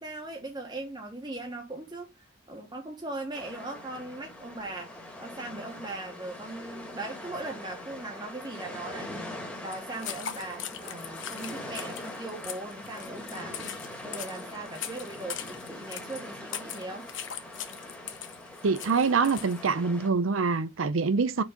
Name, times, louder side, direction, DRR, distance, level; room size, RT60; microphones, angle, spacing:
voice 1, 0.0-4.9 5.2-9.4 9.6-13.6 14.0-17.1, right 2 dB, 20° right, 1.1 m, -39 dB
sound 1, 3.3-20.1, left 1 dB, 5° left, 1.4 m, -42 dB
sound 2, 9.7-19.7, left 9 dB, 70° left, 1.0 m, -41 dB
voice 2, 18.6-21.4, right 4 dB, 80° right, 0.6 m, -25 dB
4.8 x 4.3 x 5.0 m
head